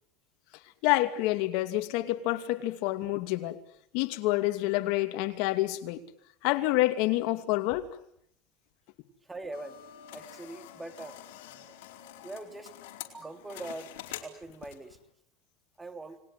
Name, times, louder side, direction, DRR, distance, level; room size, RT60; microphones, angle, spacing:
voice 1, 0.8-3.6 3.9-6.0 6.4-7.9, left 17 dB, 65° left, 8 dB, 2.7 m, -28 dB
voice 2, 9.3-9.8 10.1-11.2 12.2-12.7 13.1-13.9 14.2-15.0 15.8-16.2, right 2 dB, 10° right, 8 dB, 3.2 m, -42 dB
sound 1, 9.5-15.0, left 11 dB, 80° left, 4.4 m, -46 dB
29.5 x 20.5 x 9.4 m, 0.71 s
supercardioid pair, 135°, 0 cm